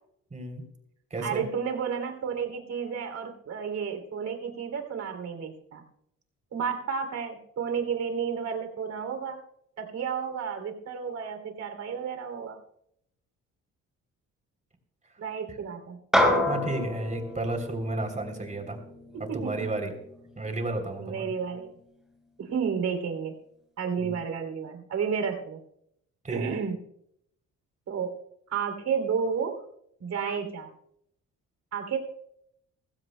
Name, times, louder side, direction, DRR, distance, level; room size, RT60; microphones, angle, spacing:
voice 1, 0.3-0.6 1.1-1.4 15.5-15.6 16.5-18.8 19.3-19.9 20.4-21.3 24.0-24.2 26.2-26.5, right 2 dB, 25° right, 5 dB, 3.2 m, -32 dB
voice 2, 1.2-5.8 6.5-9.4 9.8-12.6 15.2-16.0 19.3-19.8 21.0-21.7 22.4-23.3 23.8-25.6 26.3-26.8 27.9-28.1 28.5-29.6 30.0-30.7 31.7-32.0, right 6 dB, 65° right, 6 dB, 2.9 m, -31 dB
sound 1, 16.1-20.8, left 1 dB, ahead, 4.2 m, -29 dB
20.5 x 15.5 x 2.2 m, 0.74 s
cardioid pair, 90°, 30 cm